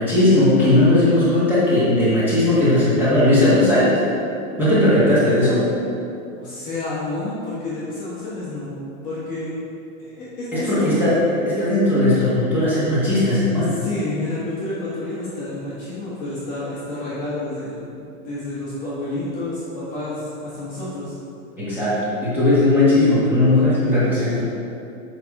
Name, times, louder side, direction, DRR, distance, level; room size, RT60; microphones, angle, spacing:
voice 1, 0.0-3.9 4.6-5.6 10.5-11.2 11.4-13.7 21.6-24.4, left 1 dB, 5° right, -12 dB, 1.4 m, -17 dB
voice 2, 6.4-8.8 9.0-9.6 10.0-11.3 13.7-21.1, left 2 dB, 20° left, -9 dB, 1.2 m, -29 dB
7.7 x 5.3 x 4.7 m, 2.6 s
supercardioid pair, 175°, 42 cm